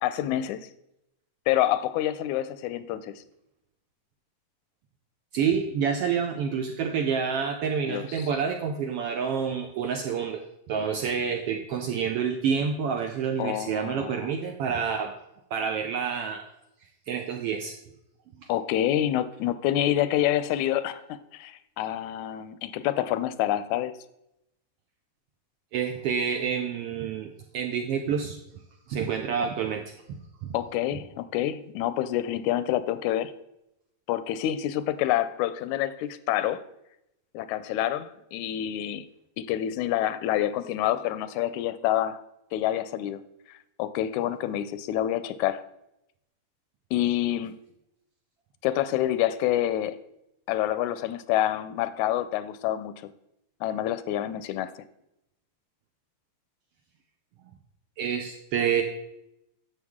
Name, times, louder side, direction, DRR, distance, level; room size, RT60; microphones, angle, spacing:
voice 1, 0.0-0.7 1.5-3.1 7.9-8.3 13.4-14.3 18.5-23.9 30.5-33.3 34.1-36.6 37.3-39.1 39.4-42.2 42.5-43.2 43.8-45.6 46.9-47.5 48.6-50.0 50.5-53.1 53.6-54.7, left 12 dB, 85° left, 14 dB, 2.0 m, -27 dB
voice 2, 5.3-10.4 10.7-15.1 15.5-16.4 17.1-17.7 18.4-18.5 25.7-28.4 28.9-30.5 58.0-58.8, right 7 dB, 75° right, 4 dB, 1.4 m, -28 dB
11.0 x 7.2 x 3.6 m, 0.84 s
omnidirectional pair, 3.3 m